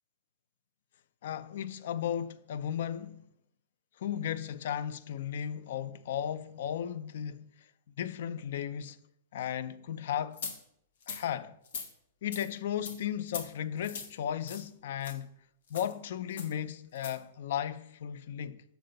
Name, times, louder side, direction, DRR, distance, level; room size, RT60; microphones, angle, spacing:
voice 1, 1.2-3.2 4.0-7.7 8.0-9.0 9.3-10.5 11.1-11.6 12.2-15.4 15.7-18.6, left 9 dB, 60° left, 0.4 m, -35 dB
sound 1, 10.4-10.5 11.0-11.2 11.6-11.9 12.3-12.5 12.8-13.0 13.3-13.5 13.8-14.1 14.5-14.7 15.0-15.1 15.7-15.9 16.4-16.5 16.9-17.1, left 6 dB, 80° left, 1.4 m, -40 dB
6.7 x 4.1 x 6.3 m
supercardioid pair, 170°, 0 cm